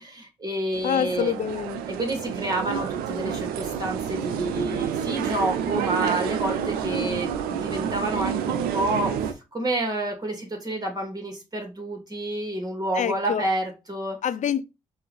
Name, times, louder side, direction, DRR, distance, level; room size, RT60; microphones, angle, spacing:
voice 1, 0.0-1.3 1.9-14.2, right 1 dB, 25° right, 2.2 m, -29 dB
sound 1, 0.7-9.3, right 8 dB, 80° right, 0.5 m, -29 dB
voice 2, 0.8-1.8 12.9-13.4 14.2-14.7, left 9 dB, 55° left, 0.4 m, -26 dB
4.4 x 2.7 x 3.3 m
hypercardioid pair, 40°, 15 cm